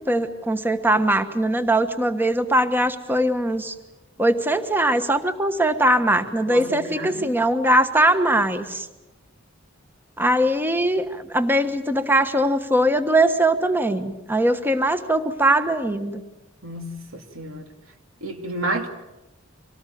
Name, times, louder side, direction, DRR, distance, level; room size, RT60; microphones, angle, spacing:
voice 1, 0.1-3.7 4.2-8.9 10.2-16.2, right 1 dB, 10° right, 9 dB, 1.3 m, -21 dB
voice 2, 6.5-7.3 16.6-17.7 18.2-18.9, right 1 dB, 85° right, 4 dB, 2.7 m, -30 dB
25.5 x 18.5 x 9.4 m, 1.0 s
head